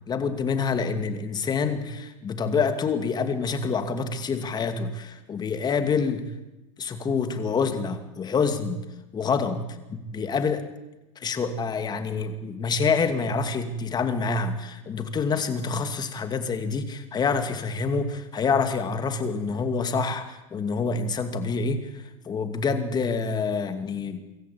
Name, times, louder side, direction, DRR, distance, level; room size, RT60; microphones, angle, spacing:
voice 1, 0.1-6.2 6.8-8.8 9.1-10.6 11.2-24.2, left 5 dB, 25° left, 8 dB, 2.6 m, -27 dB
24.5 x 14.0 x 8.7 m, 1.0 s
supercardioid pair, 120°, 17 cm